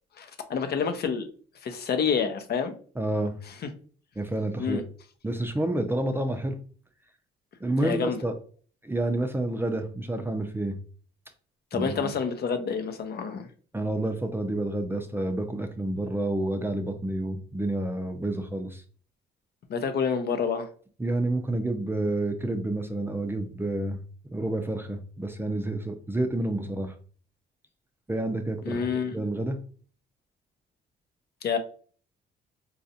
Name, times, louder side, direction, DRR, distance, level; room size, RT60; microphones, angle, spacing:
voice 1, 0.2-1.3 1.6-2.7 4.6-4.8 7.8-8.2 11.7-13.4 19.7-20.7 28.7-29.2 31.4-31.6, left 6 dB, 55° left, 7 dB, 0.6 m, -28 dB
voice 2, 3.0-3.4 4.2-4.8 5.2-6.6 7.6-8.3 8.8-10.8 11.7-12.1 13.7-18.8 21.0-24.0 24.3-26.9 28.1-29.6, right 1 dB, 10° right, 5 dB, 0.5 m, -29 dB
4.1 x 2.4 x 2.7 m, 0.43 s
cardioid pair, 90°, 20 cm